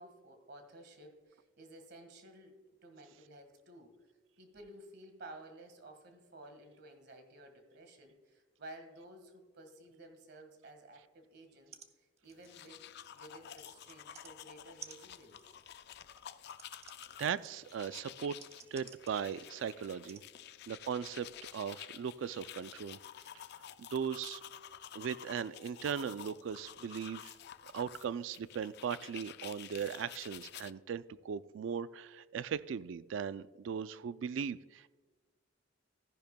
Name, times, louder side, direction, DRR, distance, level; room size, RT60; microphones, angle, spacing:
voice 1, 0.0-4.0 4.4-15.6, right 1 dB, 60° right, 6 dB, 1.6 m, -54 dB
sound 1, 11.4-11.5 11.7-11.9 12.2-14.3 14.8-19.6 20.1-20.2 21.0-21.1, right 7 dB, 35° right, 0.7 m, -55 dB
sound 2, 12.3-30.7, left 10 dB, 60° left, 0.4 m, -51 dB
voice 2, 17.2-18.4 18.7-20.2 20.7-23.0 23.8-24.4 24.9-27.3 27.7-34.9, right 7 dB, 75° right, 15 dB, 0.3 m, -38 dB
14.5 x 10.5 x 2.2 m, 1.3 s
head